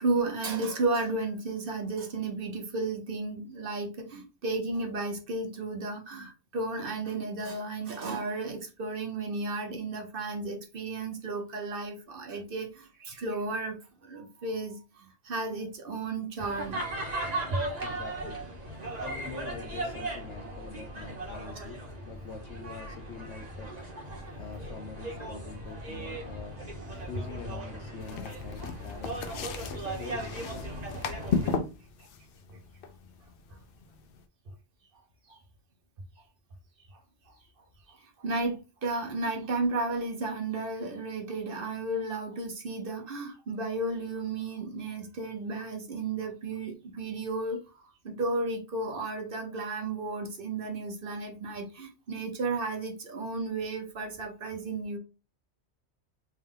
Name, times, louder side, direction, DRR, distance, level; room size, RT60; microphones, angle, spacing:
voice 1, 0.0-13.8 14.0-16.8 21.6-21.7 32.5-32.6 35.3-35.4 37.9-55.0, right 3 dB, 55° right, 1.0 m, -33 dB
sound 1, 16.4-31.6, right 1 dB, 40° right, 1.1 m, -37 dB
voice 2, 17.8-18.4 19.0-23.7 24.3-26.6 27.0-29.2 29.7-31.1, left 4 dB, 85° left, 1.1 m, -45 dB
sound 2, 28.0-34.2, left 5 dB, 60° left, 0.7 m, -35 dB
3.4 x 2.7 x 3.6 m
omnidirectional pair, 1.2 m